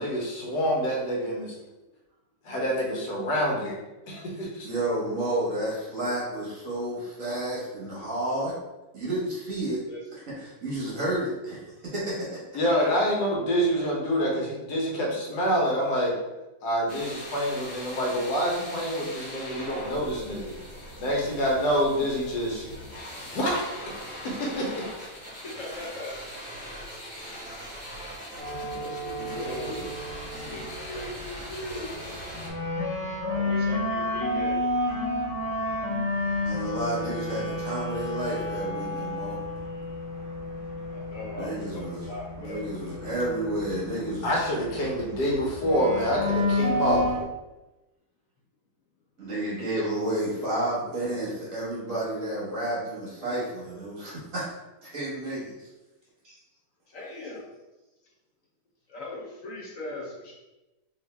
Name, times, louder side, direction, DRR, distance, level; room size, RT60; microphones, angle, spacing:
voice 1, 0.0-1.5 2.4-3.8 4.1-4.7 12.5-16.1 16.6-20.5 21.0-22.7 23.3-23.6 24.2-24.9 44.2-47.0, equal, 80° left, -2 dB, 1.5 m, -27 dB
voice 2, 4.6-8.5 8.9-9.8 10.4-11.6 11.9-12.4 36.4-39.4 41.4-42.0 42.4-44.3 49.2-54.5 54.8-55.7 56.2-56.3, right 1 dB, 55° right, -7 dB, 1.7 m, -31 dB
voice 3, 12.6-13.0 25.4-26.1 28.4-29.9 30.5-32.2 33.3-34.6 34.9-35.1 40.9-43.0 56.9-57.5 58.9-60.3, left 1 dB, 60° left, -3 dB, 1.0 m, -39 dB
sound 1, 16.9-32.5, equal, 20° left, 1.6 m, -41 dB
sound 2, 28.4-47.2, left 1 dB, 40° left, 0.5 m, -31 dB
3.7 x 3.1 x 3.3 m, 1.0 s
omnidirectional pair, 1.7 m